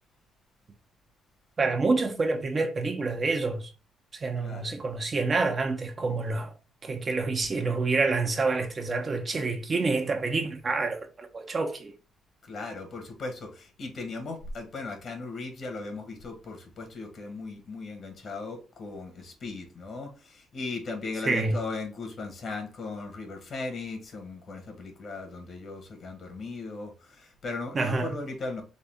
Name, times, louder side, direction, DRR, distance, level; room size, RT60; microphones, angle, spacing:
voice 1, 1.6-3.7 4.1-6.5 6.8-11.9 21.2-21.6 27.7-28.1, right 3 dB, 35° right, 1.0 m, -27 dB
voice 2, 4.4-4.7 12.4-28.6, left 3 dB, 55° left, 1.8 m, -37 dB
4.1 x 3.5 x 3.5 m
cardioid pair, 90°, 0 cm